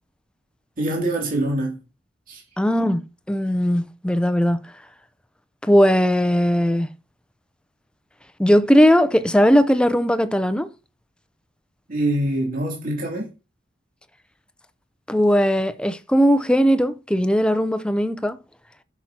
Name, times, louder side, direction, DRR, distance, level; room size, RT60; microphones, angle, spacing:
voice 1, 0.8-1.8 2.3-2.4 11.9-13.3, right 1 dB, 50° right, 2.7 m, -24 dB
voice 2, 2.6-4.6 5.6-6.9 8.4-10.7 15.1-18.4, equal, 5° left, 0.5 m, -18 dB
13.0 x 6.1 x 2.8 m
head